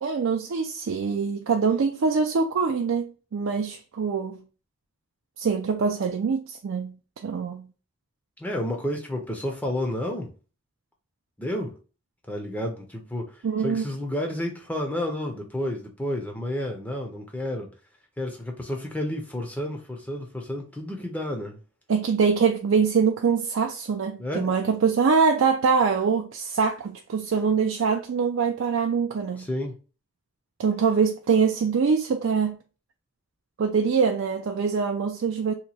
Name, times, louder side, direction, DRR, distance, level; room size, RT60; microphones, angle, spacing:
voice 1, 0.0-3.0 3.3-4.4 5.4-7.0 7.2-7.7 13.4-13.9 21.9-29.5 30.6-32.6 33.6-35.5, right 5 dB, 75° right, 0.4 m, -24 dB
voice 2, 8.4-10.3 11.4-11.8 12.3-17.7 18.2-21.6 24.2-24.5 29.4-29.8, left 1 dB, 10° left, 0.5 m, -31 dB
2.9 x 2.2 x 4.0 m
head